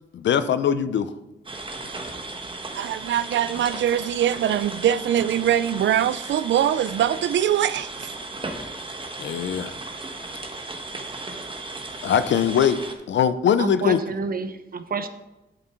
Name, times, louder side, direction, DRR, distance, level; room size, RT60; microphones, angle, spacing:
voice 1, 0.1-1.1 9.2-9.7 12.0-12.8 13.1-14.0, left 8 dB, 85° left, 0.6 m, -21 dB
sound 1, 1.4-12.9, right 2 dB, 30° right, 1.3 m, -36 dB
voice 2, 2.7-8.1, right 10 dB, 85° right, 0.4 m, -23 dB
voice 3, 13.6-15.1, right 4 dB, 55° right, 0.9 m, -29 dB
8.1 x 7.9 x 4.5 m
cardioid pair, 65°, 18 cm